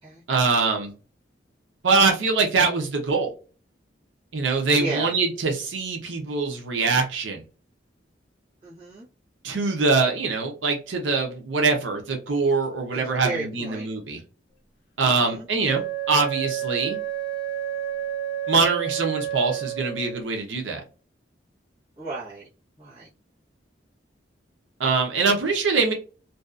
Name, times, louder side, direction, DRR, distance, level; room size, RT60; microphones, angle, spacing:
voice 1, 0.3-0.9 1.8-3.3 4.3-7.4 9.4-14.2 15.0-15.8 16.1-17.0 18.5-20.8 24.8-25.9, right 4 dB, 90° right, 2 dB, 0.7 m, -23 dB
voice 2, 4.8-5.1 8.6-9.1 12.9-13.9 15.0-15.5 15.7-15.8 22.0-22.5 22.8-23.1, right 3 dB, 25° right, -11 dB, 0.9 m, -34 dB
Wind instrument woodwind instrument, 15.6-20.3, right 11 dB, 60° left, 0.6 m, -30 dB
2.6 x 2.3 x 2.4 m, 0.35 s
head